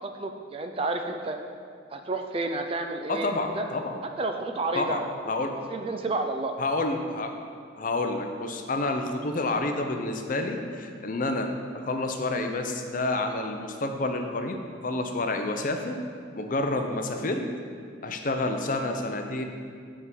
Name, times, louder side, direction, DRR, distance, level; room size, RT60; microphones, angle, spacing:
voice 1, 0.0-1.4 1.9-3.7 4.2-5.1 5.7-6.6, right 2 dB, 30° right, 5 dB, 0.4 m, -30 dB
voice 2, 3.1-4.0 4.7-5.6 6.6-7.3 7.8-16.0 16.3-17.5 18.0-19.4, left 2 dB, 40° left, 5 dB, 0.5 m, -29 dB
8.2 x 3.7 x 6.2 m, 2.2 s
head